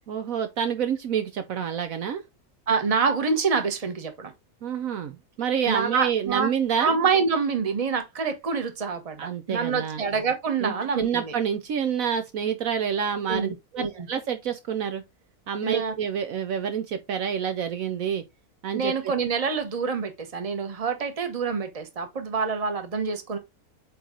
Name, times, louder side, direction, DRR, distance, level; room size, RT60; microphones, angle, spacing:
voice 1, 0.1-2.2 4.6-6.9 9.2-10.0 10.6-15.0 15.5-18.2 18.6-18.9, right 8 dB, 65° right, 1.1 m, -28 dB
voice 2, 2.7-4.3 5.7-6.5 6.8-11.3 13.3-14.1 15.6-15.9 18.7-23.4, right 5 dB, 25° right, 1.1 m, -26 dB
8.1 x 3.2 x 3.8 m
omnidirectional pair, 1.6 m